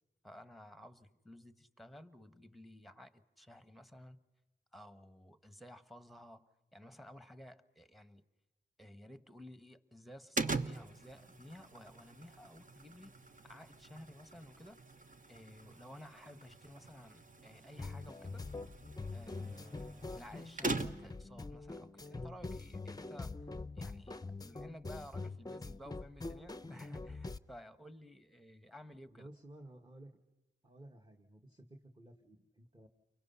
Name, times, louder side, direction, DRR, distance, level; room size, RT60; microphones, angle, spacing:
voice 1, 0.2-4.2 4.7-8.2 8.8-13.1 13.4-14.8 15.3-18.4 19.1-23.3 23.8-29.3, left 1 dB, ahead, 12 dB, 1.3 m, -54 dB
sound 1, 10.4-21.2, right 3 dB, 40° right, 1.3 m, -43 dB
sound 2, 17.8-27.4, left 3 dB, 20° left, 0.7 m, -44 dB
voice 2, 29.1-30.1 30.6-32.9, right 1 dB, 20° right, 3 dB, 1.8 m, -55 dB
29.5 x 24.0 x 5.7 m, 1.1 s
cardioid pair, 70°, 20 cm